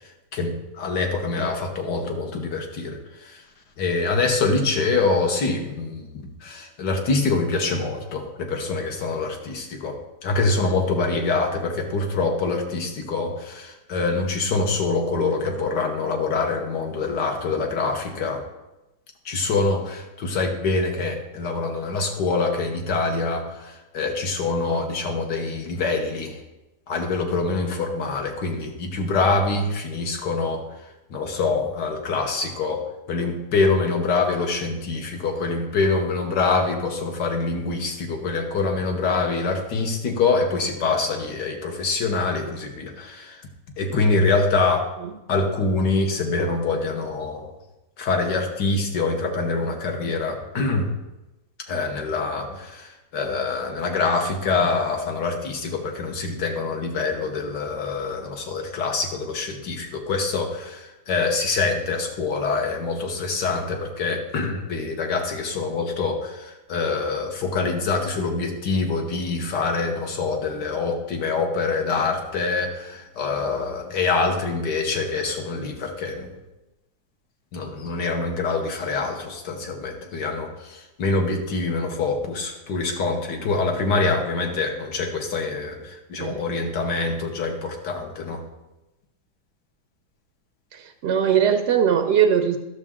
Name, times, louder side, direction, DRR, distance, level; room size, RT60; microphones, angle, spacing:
voice 1, 0.3-3.4 3.8-6.1 6.4-18.4 19.3-26.4 26.9-30.6 31.1-43.4 43.8-44.9 45.3-47.5 48.0-50.9 51.7-76.3 77.5-88.4, left 3 dB, 85° left, 3 dB, 1.8 m, -25 dB
voice 2, 90.7-92.6, right 8 dB, 75° right, 6 dB, 0.6 m, -20 dB
11.5 x 6.5 x 3.7 m, 0.99 s
omnidirectional pair, 1.8 m